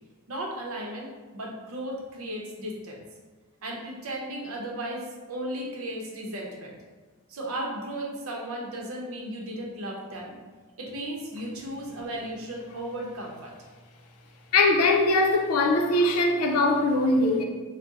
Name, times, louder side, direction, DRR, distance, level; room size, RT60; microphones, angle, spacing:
voice 1, 0.3-3.0 3.6-6.7 7.3-10.4 10.8-13.5, right 1 dB, 70° right, 0.7 m, -35 dB
voice 2, 14.5-17.4, left 2 dB, 80° left, 0.5 m, -21 dB
3.6 x 2.1 x 3.9 m
head